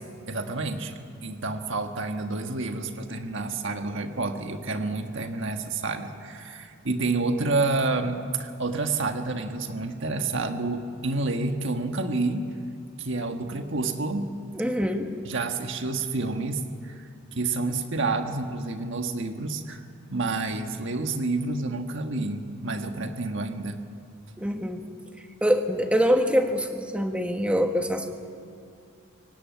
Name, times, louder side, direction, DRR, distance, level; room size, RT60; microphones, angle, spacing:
voice 1, 0.3-12.5 13.0-14.4 15.2-19.8 20.1-23.8, right 3 dB, 55° right, 6 dB, 1.5 m, -29 dB
voice 2, 14.5-15.1 24.4-24.8 25.4-28.1, equal, 5° right, 5 dB, 1.3 m, -24 dB
25.0 x 16.5 x 9.4 m, 2.4 s
head